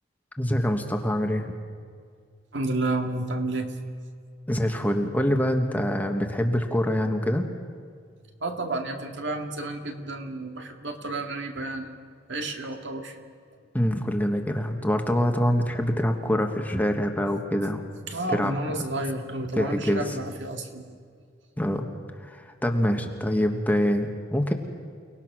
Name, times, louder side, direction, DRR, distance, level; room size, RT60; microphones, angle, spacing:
voice 1, 0.4-1.5 4.5-7.4 13.7-17.8 18.3-18.5 19.5-20.2 21.6-21.9 22.2-24.5, equal, 10° left, 4 dB, 1.3 m, -25 dB
voice 2, 2.5-3.7 8.4-11.9 12.3-13.2 18.1-20.9, right 2 dB, 65° right, 4 dB, 2.2 m, -31 dB
29.5 x 19.0 x 6.2 m, 2.1 s
head